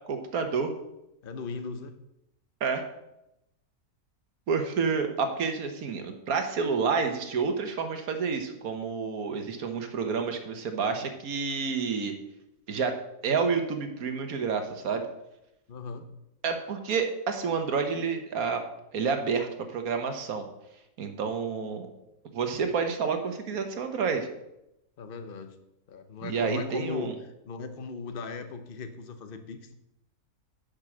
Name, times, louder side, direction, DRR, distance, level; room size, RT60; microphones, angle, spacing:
voice 1, 0.1-0.7 2.6-2.8 4.5-12.1 12.7-13.0 13.2-15.0 16.4-18.6 18.9-20.4 21.0-21.9 22.3-24.3 26.2-27.1, right 5 dB, 65° right, 6 dB, 1.5 m, -29 dB
voice 2, 1.2-2.0 15.7-16.1 25.0-25.6 25.9-27.1 27.5-29.7, left 4 dB, 45° left, 8 dB, 0.9 m, -37 dB
10.0 x 5.4 x 6.0 m, 0.86 s
omnidirectional pair, 1.7 m